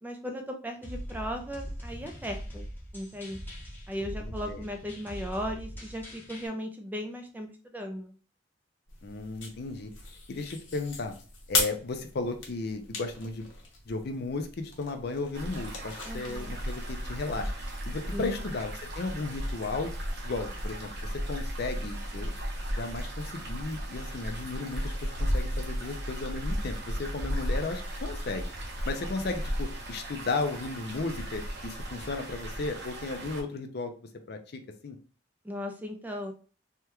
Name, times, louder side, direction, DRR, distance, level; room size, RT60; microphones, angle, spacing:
voice 1, 0.0-2.7 2.9-3.4 3.9-8.2 16.0-16.5 18.1-18.4 35.4-36.3, equal, 10° right, 4 dB, 0.4 m, -37 dB
sound 1, 0.8-6.5, equal, 10° left, 0.8 m, -41 dB
voice 2, 4.2-4.6 9.0-9.9 10.3-11.1 11.5-13.5 13.9-17.5 17.9-19.9 20.2-22.3 22.7-28.5 28.9-33.9 34.3-35.0, left 3 dB, 55° left, 6 dB, 0.5 m, -35 dB
sound 2, 8.9-17.7, left 4 dB, 85° left, 1.0 m, -38 dB
sound 3, 15.3-33.4, equal, 60° right, 0.7 m, -35 dB
3.5 x 2.2 x 2.9 m, 0.37 s
head